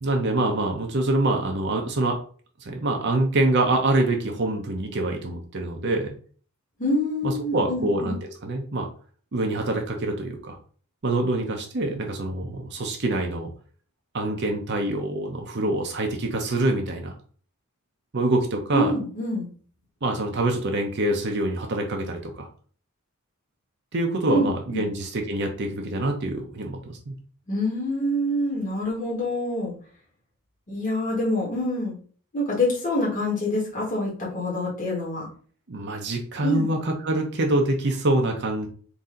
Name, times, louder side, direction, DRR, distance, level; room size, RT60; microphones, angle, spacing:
voice 1, 0.0-2.2 2.6-6.2 7.2-8.9 9.3-10.6 11.0-13.5 14.1-17.1 18.1-18.9 20.0-22.5 23.9-27.1 35.7-38.7, right 2 dB, 50° right, 3 dB, 0.7 m, -25 dB
voice 2, 6.8-8.1 18.7-19.5 24.3-24.9 27.5-29.7 30.7-31.9 32.3-35.3 36.4-36.7, left 1 dB, 35° left, -4 dB, 1.4 m, -26 dB
4.0 x 2.7 x 3.7 m, 0.43 s
head